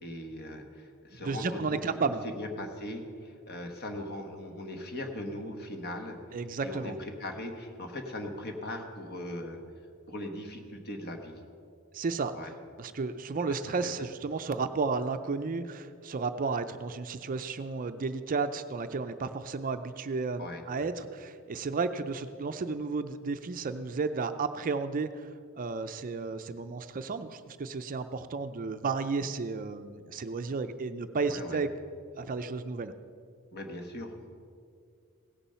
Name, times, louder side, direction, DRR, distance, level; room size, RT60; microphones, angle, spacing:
voice 1, 0.0-1.8 2.2-6.2 6.6-9.6 10.1-11.4 12.3-12.5 13.5-13.6 13.8-14.1 20.4-20.6 31.3-31.6 33.5-34.2, left 1 dB, 45° left, 4 dB, 1.3 m, -39 dB
voice 2, 1.2-2.2 6.3-7.0 11.9-12.3 12.8-25.3 25.5-31.7 32.2-32.9, right 4 dB, 40° right, 9 dB, 0.4 m, -33 dB
17.0 x 7.1 x 5.6 m, 2.3 s
head